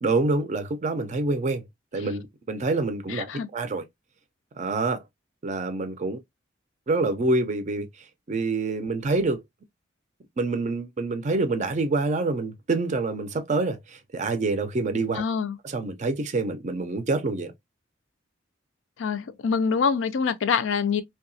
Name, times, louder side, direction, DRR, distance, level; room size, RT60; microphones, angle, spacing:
voice 1, 0.0-1.6 1.9-3.3 3.5-3.8 4.6-5.0 5.4-6.2 6.9-7.9 8.3-9.4 10.4-15.2 15.6-17.5, right 3 dB, 40° right, 0.4 m, -26 dB
voice 2, 3.1-3.5 15.1-15.6 19.0-21.0, left 6 dB, 75° left, 0.4 m, -25 dB
2.7 x 2.3 x 2.5 m
head